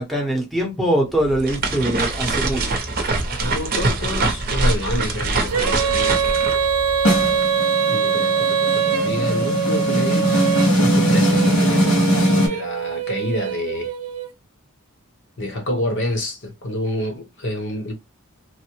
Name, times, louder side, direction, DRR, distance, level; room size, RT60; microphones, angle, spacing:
voice 1, 0.0-2.8, right 1 dB, ahead, 0.9 m, -22 dB
sound 1, 1.1-7.5, right 2 dB, 45° right, 0.7 m, -24 dB
voice 2, 3.4-6.2 7.8-10.3 10.8-13.9 15.4-18.0, left 1 dB, 55° left, 1.0 m, -28 dB
Female singing, 5.5-14.3, right 7 dB, 85° right, 0.6 m, -23 dB
sound 2, 7.0-12.5, equal, 80° left, 1.7 m, -20 dB
3.2 x 2.1 x 2.9 m
head